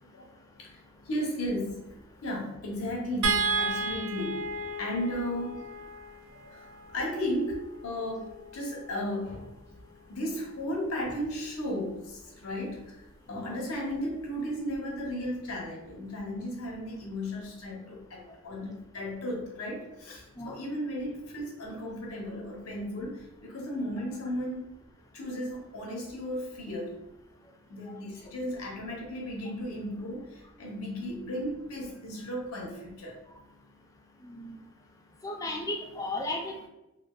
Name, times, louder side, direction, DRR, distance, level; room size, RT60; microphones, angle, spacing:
voice 1, 0.0-1.8 2.2-4.5 4.8-5.7 6.3-9.8 10.1-24.7 25.1-27.0 27.7-33.2, equal, 85° left, -1 dB, 0.8 m, -35 dB
sound 1, 3.2-9.5 11.1-11.2 11.6-11.8, right 3 dB, 70° right, 0.3 m, -34 dB
voice 2, 35.2-36.7, left 2 dB, 15° left, 1 dB, 0.3 m, -34 dB
3.1 x 2.5 x 2.3 m, 0.94 s
head